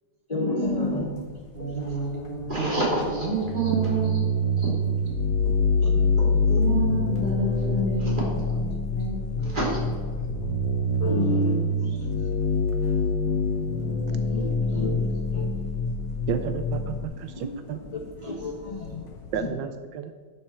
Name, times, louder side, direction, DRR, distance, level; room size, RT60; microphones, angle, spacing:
voice 1, 0.3-1.4 5.8-6.1 8.0-8.1 11.0-12.0 14.1-15.0 15.3-15.5 17.4-17.6 17.9-19.0 19.4-19.5, left 3 dB, 35° left, 0 dB, 0.6 m, -30 dB
sound 1, 0.6-19.5, left 4 dB, 55° left, 1.2 m, -46 dB
voice 2, 1.5-4.2 4.6-4.7 6.2-10.2, right 2 dB, 25° right, -5 dB, 3.0 m, -29 dB
sound 2, 3.4-17.0, left 2 dB, 70° left, 1.5 m, -25 dB
voice 3, 16.3-17.8 19.3-20.1, right 8 dB, 80° right, 9 dB, 1.2 m, -32 dB
11.0 x 6.5 x 4.4 m, 1.5 s
omnidirectional pair, 2.0 m